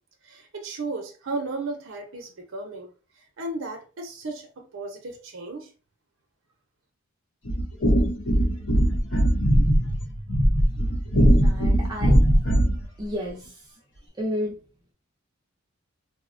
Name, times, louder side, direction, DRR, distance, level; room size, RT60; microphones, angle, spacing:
voice 1, 0.2-2.9 3.4-5.7, right 3 dB, 65° right, 0.6 m, -34 dB
sound 1, 7.5-12.8, equal, 60° left, 0.7 m, -20 dB
voice 2, 11.4-12.2 13.0-13.7 14.1-14.6, equal, 20° right, 0.5 m, -31 dB
3.8 x 2.1 x 2.5 m
head